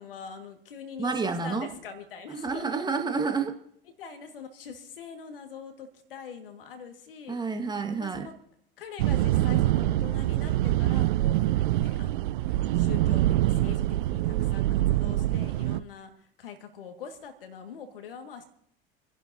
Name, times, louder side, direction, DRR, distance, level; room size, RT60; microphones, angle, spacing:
voice 1, 0.0-2.9 4.0-7.4 8.0-8.3 8.8-11.4 11.8-12.3 12.7-18.4, left 6 dB, 70° left, 6 dB, 2.0 m, -43 dB
voice 2, 1.0-1.7 2.3-3.5 7.3-8.3, right 4 dB, 15° right, 6 dB, 1.5 m, -29 dB
sound 1, 9.0-15.8, right 14 dB, 60° right, 0.6 m, -25 dB
29.5 x 11.0 x 2.8 m, 0.69 s
figure-of-eight pair, 75°, 29 cm